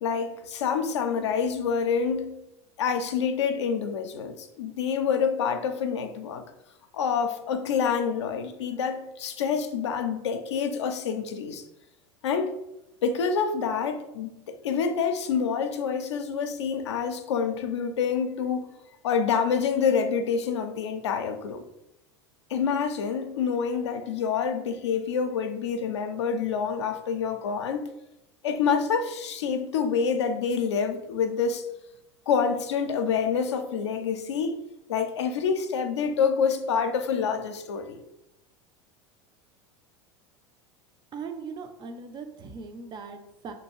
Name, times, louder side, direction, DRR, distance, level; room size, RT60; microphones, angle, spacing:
voice 1, 0.0-2.4 2.8-6.4 6.9-11.6 12.2-12.5 13.0-18.7 19.0-21.6 22.5-27.8 28.4-31.7 32.3-34.6 34.9-38.0, left 6 dB, 80° left, 0.4 m, -27 dB
voice 2, 41.1-43.5, right 5 dB, 30° right, 0.4 m, -39 dB
2.7 x 2.3 x 3.0 m
hypercardioid pair, 80°, 15 cm